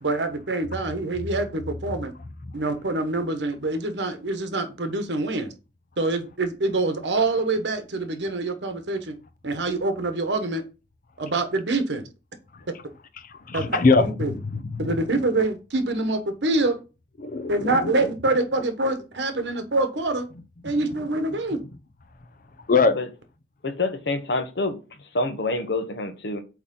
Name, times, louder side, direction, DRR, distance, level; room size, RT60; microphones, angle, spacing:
voice 1, 0.0-2.1 2.5-5.5 6.0-9.1 9.4-10.6 11.2-12.0 13.5-14.3 14.8-16.8 17.5-20.3 20.6-21.6, right 2 dB, 85° right, 1.2 m, -25 dB
voice 2, 13.2-15.0 17.2-17.9 20.6-20.8 22.7-23.0, left 4 dB, 50° left, 0.6 m, -23 dB
voice 3, 23.6-24.8 25.1-26.4, left 2 dB, 70° left, 1.0 m, -27 dB
8.1 x 3.1 x 3.8 m
head